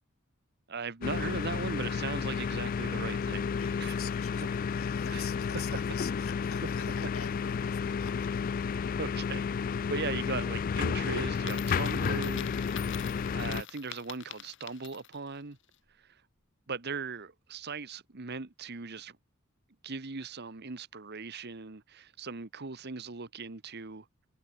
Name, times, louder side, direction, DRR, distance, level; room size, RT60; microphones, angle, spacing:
voice 1, 0.7-3.5 3.8-3.9 5.1-5.2 9.0-9.4 9.9-13.0 13.3-15.6 16.7-19.2 19.8-24.0, right 4 dB, 50° right, 1.2 m, -38 dB
sound 1, 1.0-13.6, left 6 dB, 40° left, 0.3 m, -32 dB
voice 2, 3.6-8.3, left 9 dB, 85° left, 5.2 m, -47 dB
Coin (dropping), 11.4-15.3, left 11 dB, 60° left, 2.2 m, -46 dB
head